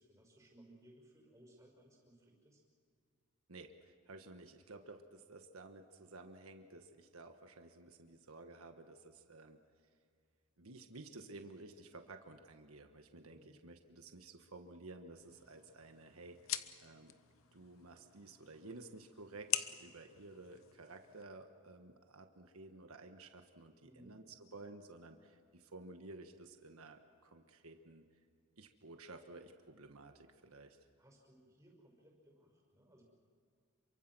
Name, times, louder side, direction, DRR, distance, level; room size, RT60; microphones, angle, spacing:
voice 1, 0.0-2.6 13.3-13.6 23.8-24.2 31.0-33.0, right 1 dB, 15° right, 1 dB, 5.6 m, -63 dB
voice 2, 3.5-9.6 10.6-17.1 17.5-28.0 28.6-30.8, right 2 dB, 85° right, 6 dB, 1.4 m, -54 dB
sound 1, 15.2-21.2, left 12 dB, 75° left, 0.9 m, -45 dB
28.0 x 24.0 x 6.2 m, 2.1 s
head